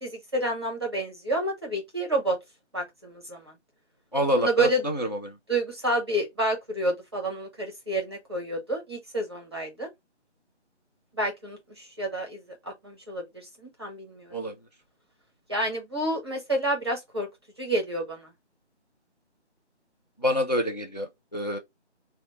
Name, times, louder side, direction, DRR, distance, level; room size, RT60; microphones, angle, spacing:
voice 1, 0.0-2.4 2.7-3.5 4.3-4.8 5.5-9.9 11.1-14.3 15.5-17.3 17.6-18.3, right 1 dB, 25° right, 0.7 m, -29 dB
voice 2, 4.1-5.3 14.3-14.5 20.2-21.6, equal, 35° left, 0.4 m, -27 dB
4.1 x 2.1 x 3.0 m
figure-of-eight pair, 165°, 35 cm